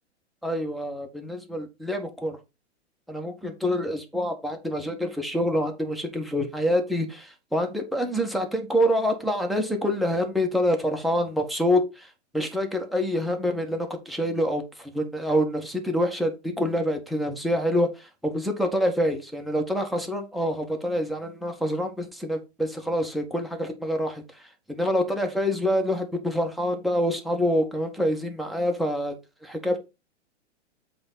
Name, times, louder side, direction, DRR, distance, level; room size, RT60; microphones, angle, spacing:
voice 1, 0.4-2.4 3.1-29.1 29.4-29.8, equal, ahead, 5 dB, 1.3 m, -26 dB
7.8 x 3.8 x 5.4 m, 0.26 s
hypercardioid pair, 110°, 35 cm